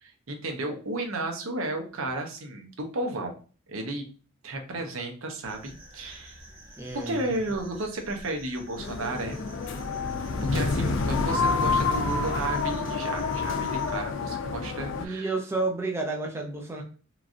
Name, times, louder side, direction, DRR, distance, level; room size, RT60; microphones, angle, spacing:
voice 1, 0.0-3.4 3.7-4.0 4.4-6.4 6.9-9.4 10.4-15.3, right 2 dB, 90° right, 4 dB, 0.6 m, -33 dB
sound 1, 5.4-14.0, right 1 dB, 50° right, 1.4 m, -49 dB
voice 2, 6.8-7.2 10.5-10.6 15.0-16.8, right 3 dB, 10° right, 0 dB, 0.4 m, -31 dB
sound 2, 8.8-15.1, left 4 dB, 65° left, 0.4 m, -28 dB
3.0 x 2.5 x 2.4 m, 0.38 s
head